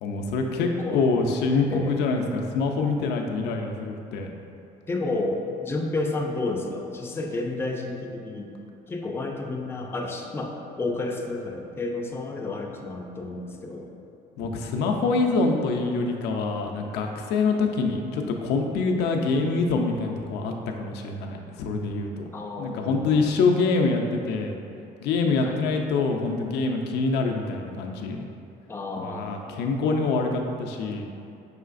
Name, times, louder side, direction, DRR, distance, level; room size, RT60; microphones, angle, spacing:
voice 1, 0.0-4.3 14.4-20.5 20.8-22.2 22.6-24.6 25.0-28.2 29.0-31.1, left 3 dB, 80° left, 2 dB, 0.4 m, -25 dB
voice 2, 0.6-1.0 1.7-2.0 4.9-13.9 22.3-23.3 25.4-25.6 28.7-29.3, left 2 dB, 15° left, 0 dB, 0.4 m, -31 dB
5.5 x 3.1 x 2.5 m, 2.7 s
cardioid pair, 110°, 17 cm